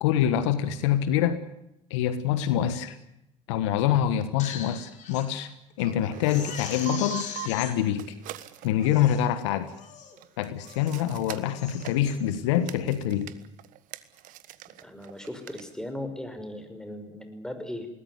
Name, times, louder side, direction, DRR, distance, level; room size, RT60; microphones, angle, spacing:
voice 1, 0.0-1.4 1.9-3.0 3.5-5.5 5.8-8.1 8.6-9.7 10.4-13.3, left 10 dB, 75° left, 13 dB, 1.5 m, -25 dB
Crying sobbing, 4.2-5.3 5.7-5.8 6.2-7.7 8.4-8.5 8.8-9.3 9.8-10.2 10.6-11.0 11.4-12.1 12.6-12.9, left 8 dB, 55° left, 4.5 m, -40 dB
sound 1, 5.8-7.6 7.9-9.5 10.2-15.6, right 15 dB, 60° right, 1.5 m, -42 dB
voice 2, 14.8-17.9, left 1 dB, 5° left, 7 dB, 5.8 m, -37 dB
21.5 x 19.0 x 9.7 m, 0.86 s
hypercardioid pair, 65°, 15 cm